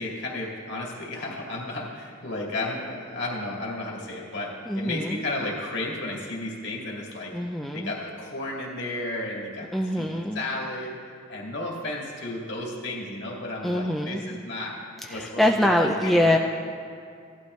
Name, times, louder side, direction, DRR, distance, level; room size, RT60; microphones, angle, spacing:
voice 1, 0.0-7.3 7.7-9.7 10.0-11.0 11.3-14.8 15.1-16.4, left 2 dB, 55° left, -2 dB, 2.1 m, -33 dB
voice 2, 4.7-5.2 7.3-7.9 9.7-10.4 13.6-14.3 15.0-16.4, left 1 dB, ahead, 1 dB, 0.3 m, -24 dB
16.5 x 11.5 x 3.2 m, 2.3 s
head